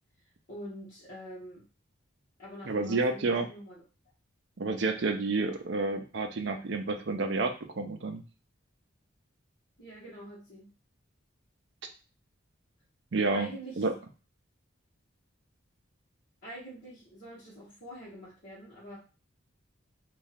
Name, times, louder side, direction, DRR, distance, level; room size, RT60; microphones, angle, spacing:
voice 1, 0.5-1.7 2.4-3.8 9.8-10.7 13.3-14.0 16.4-19.0, equal, 45° left, -10 dB, 1.2 m, -45 dB
voice 2, 2.6-3.5 4.6-8.2 13.1-13.5 13.8-13.9, right 3 dB, 60° right, 5 dB, 0.5 m, -29 dB
3.0 x 2.4 x 4.0 m, 0.34 s
head